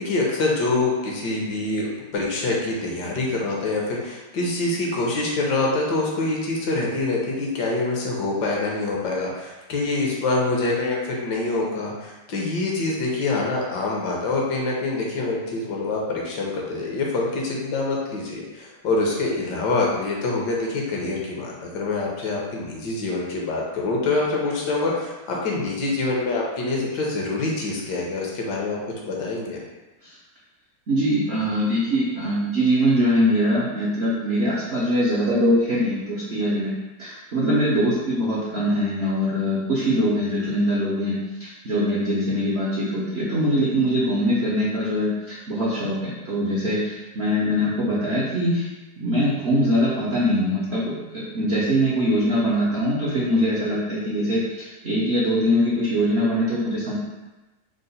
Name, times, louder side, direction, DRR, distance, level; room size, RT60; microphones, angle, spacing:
voice 1, 0.0-28.8 29.0-29.6, left 2 dB, 75° left, -2 dB, 1.4 m, -25 dB
voice 2, 30.9-36.7 37.0-41.1 41.4-48.7 49.0-56.9, equal, 70° right, -7 dB, 0.6 m, -22 dB
3.7 x 2.1 x 3.9 m, 1.1 s
omnidirectional pair, 1.9 m